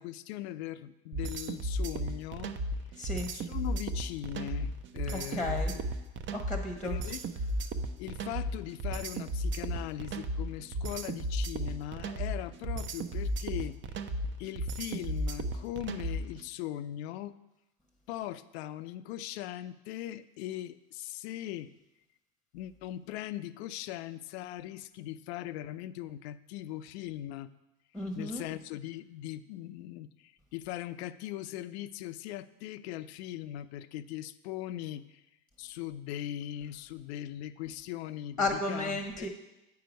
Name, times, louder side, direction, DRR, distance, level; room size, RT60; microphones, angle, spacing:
voice 1, 0.0-2.6 3.0-5.8 6.8-7.3 8.0-13.8 14.4-17.4 18.1-21.7 22.5-27.5 28.1-35.2 35.6-39.3, left 13 dB, 80° left, 15 dB, 0.5 m, -40 dB
sound 1, 1.1-16.4, right 1 dB, 35° right, 0.6 m, -34 dB
voice 2, 3.0-3.3 5.1-5.7 6.3-7.0 27.9-28.5 38.4-39.3, left 2 dB, ahead, 3 dB, 1.0 m, -33 dB
8.6 x 4.7 x 5.1 m, 0.98 s
hypercardioid pair, 85°, 32 cm